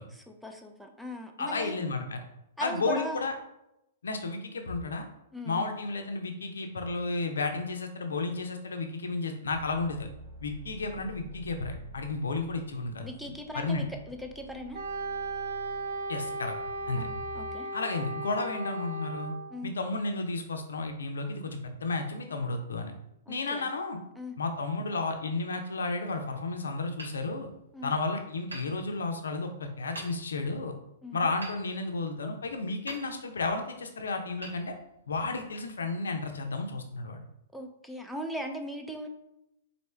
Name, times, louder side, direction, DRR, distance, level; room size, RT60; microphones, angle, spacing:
voice 1, 0.1-1.8 2.6-3.2 5.3-5.7 13.0-14.8 17.0-17.7 19.5-19.7 23.3-23.7 24.2-24.4 27.7-27.9 31.0-31.2 37.5-39.1, equal, ahead, 4 dB, 0.5 m, -39 dB
voice 2, 1.4-2.2 2.6-3.3 4.0-5.1 5.5-10.1 10.4-13.1 13.5-13.9 16.1-16.6 16.9-17.1 17.7-19.3 19.6-22.9 23.3-24.0 24.4-27.5 27.8-30.7 31.1-34.7 35.1-37.2, left 3 dB, 70° left, 5 dB, 0.6 m, -32 dB
sound 1, 9.5-17.5, right 2 dB, 30° right, 1.2 m, -49 dB
Wind instrument woodwind instrument, 14.7-19.5, right 2 dB, 55° right, 0.7 m, -36 dB
Hammer, 27.0-28.0 28.5-29.4 29.9-30.6 31.4-32.4 32.8-33.6 34.4-35.3, right 1 dB, 80° right, 1.2 m, -47 dB
4.3 x 2.7 x 3.2 m, 0.86 s
figure-of-eight pair, 110°, 0 cm